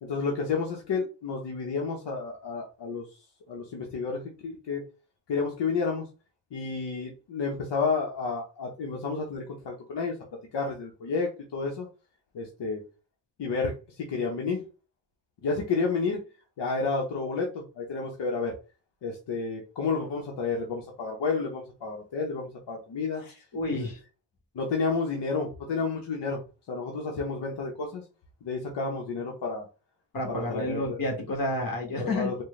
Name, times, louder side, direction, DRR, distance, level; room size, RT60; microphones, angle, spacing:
voice 1, 0.0-3.1 3.5-4.8 5.3-6.1 6.5-10.1 10.5-11.9 12.3-12.8 13.4-13.7 14.0-14.6 15.4-16.2 16.6-18.5 19.0-23.2 23.7-23.9 24.5-26.4 26.7-28.0 28.4-29.7 30.3-31.0 32.0-32.3, left 4 dB, 75° left, -1 dB, 0.9 m, -30 dB
voice 2, 23.2-24.0 30.1-32.3, left 2 dB, 55° left, 1 dB, 1.4 m, -30 dB
4.3 x 2.2 x 3.2 m, 0.32 s
wide cardioid pair, 130°, 42 cm